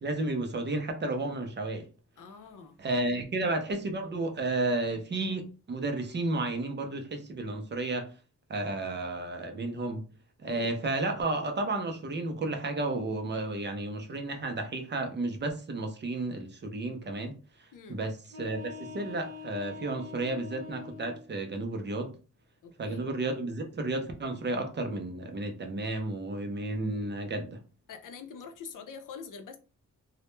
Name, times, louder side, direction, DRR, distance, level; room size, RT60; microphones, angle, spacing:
voice 1, 0.0-1.9 2.8-5.4 5.7-8.1 8.5-10.0 10.4-17.3 17.9-22.1 22.8-27.6, right 2 dB, 35° right, 0.4 m, -32 dB
voice 2, 2.2-2.8 3.1-3.2 10.4-10.8 17.7-18.0 22.6-23.1 26.9-27.0 27.9-29.6, left 5 dB, 80° left, 0.5 m, -45 dB
sound 1, 18.2-21.2, left 6 dB, 80° right, 0.6 m, -44 dB
2.1 x 2.0 x 3.0 m
wide cardioid pair, 175°, 31 cm